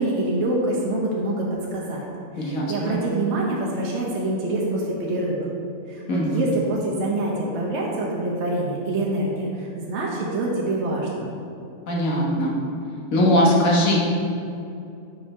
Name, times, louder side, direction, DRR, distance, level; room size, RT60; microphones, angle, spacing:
voice 1, 0.0-2.0 2.3-5.5 5.9-11.3, right 2 dB, 60° right, -3 dB, 1.1 m, -26 dB
voice 2, 2.4-3.0 6.1-6.4 11.9-12.6 13.1-14.0, equal, 80° left, -3 dB, 1.5 m, -20 dB
5.5 x 4.9 x 4.8 m, 2.6 s
omnidirectional pair, 1.4 m